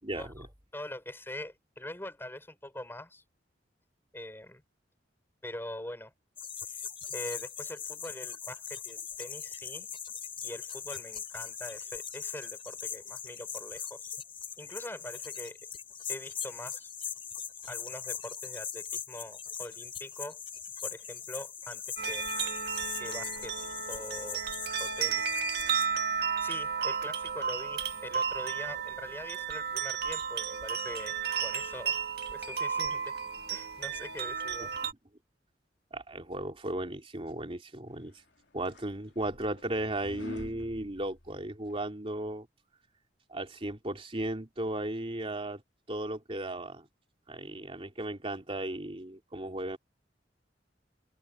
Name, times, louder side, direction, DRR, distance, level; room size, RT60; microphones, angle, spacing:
voice 1, 0.0-0.5 35.9-38.1 38.5-42.5 43.3-45.6 45.9-46.9 47.3-49.8, right 1 dB, 30° right, 3.1 m, -35 dB
voice 2, 0.7-3.2 4.1-4.6 5.4-6.1 6.7-6.9 7.1-9.9 10.4-14.1 14.6-15.6 16.1-16.9 17.6-20.4 20.8-22.3 23.0-23.6 23.9-24.4 24.8-25.4 25.9-26.0 26.4-32.0 32.3-33.2 33.5-34.7, left 1 dB, 15° left, 4.5 m, -43 dB
sound 1, 6.4-25.9, left 8 dB, 30° left, 4.4 m, -40 dB
sound 2, 22.0-34.9, right 6 dB, 60° right, 1.7 m, -33 dB
sound 3, 38.2-41.8, left 1 dB, 80° left, 2.9 m, -48 dB
head